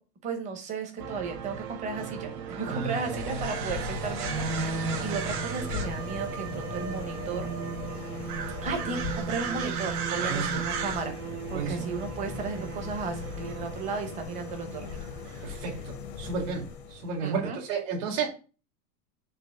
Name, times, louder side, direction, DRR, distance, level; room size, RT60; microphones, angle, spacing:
voice 1, 0.2-4.8 5.0-7.5 8.6-11.1 11.5-15.0 15.4-15.6 17.2-17.6, right 4 dB, 15° right, 5 dB, 0.8 m, -35 dB
sound 1, 1.0-15.6, right 6 dB, 80° right, 1.7 m, -35 dB
sound 2, 2.6-17.3, left 6 dB, 20° left, 0.5 m, -40 dB
voice 2, 2.7-3.2 10.2-10.6 11.5-11.9 15.4-18.3, right 5 dB, 50° right, 0 dB, 2.4 m, -32 dB
7.4 x 3.0 x 5.8 m, 0.35 s
supercardioid pair, 170°, 46 cm